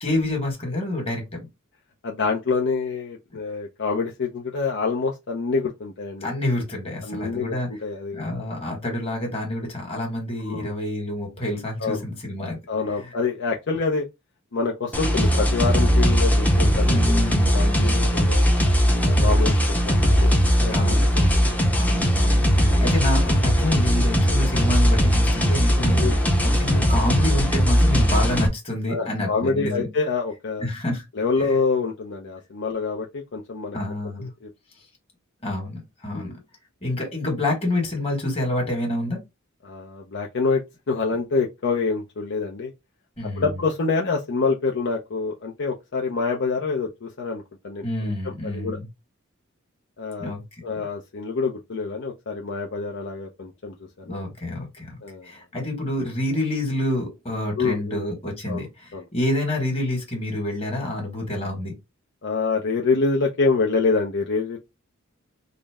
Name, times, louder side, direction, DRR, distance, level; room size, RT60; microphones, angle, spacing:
voice 1, 0.0-1.2 6.2-7.7 8.1-12.6 16.8-18.1 20.7-21.1 21.8-26.0 26.4-29.9 30.6-31.0 31.4-31.6 33.7-34.3 35.4-36.3 36.8-39.2 43.2-43.6 47.8-48.9 50.2-50.4 50.7-50.9 54.1-54.9 55.2-61.7, left 1 dB, 30° left, 1.6 m, -28 dB
voice 2, 2.0-6.3 7.0-8.3 10.4-10.7 11.8-12.0 12.7-14.1 14.5-18.5 19.0-21.6 22.6-22.9 26.0-26.4 28.9-30.7 31.1-33.8 34.2-34.5 36.1-36.4 39.6-42.7 43.4-48.8 50.0-50.3 50.6-54.2 55.0-55.3 57.6-58.0 58.5-58.7 58.9-59.0 62.2-64.6, left 4 dB, 60° left, 0.6 m, -26 dB
sound 1, 14.9-28.5, equal, 5° left, 0.6 m, -19 dB
3.8 x 2.1 x 3.4 m
head